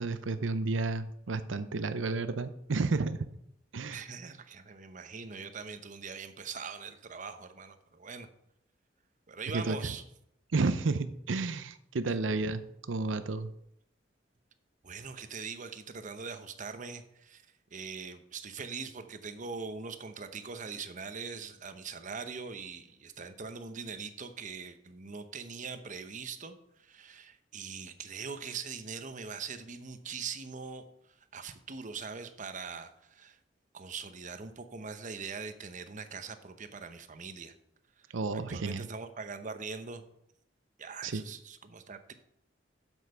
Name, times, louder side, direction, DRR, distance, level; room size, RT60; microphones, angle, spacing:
voice 1, 0.0-3.3 3.7-4.0 9.5-9.8 10.5-13.5 38.1-38.9 41.0-41.2, right 3 dB, 90° right, 11 dB, 0.6 m, -31 dB
voice 2, 3.9-8.3 9.3-10.0 12.0-12.1 14.8-17.5 17.7-33.4 33.7-37.5 38.0-38.1 38.3-40.0 40.8-42.1, right 5 dB, 45° right, 9 dB, 0.9 m, -42 dB
7.9 x 7.3 x 5.6 m, 0.76 s
head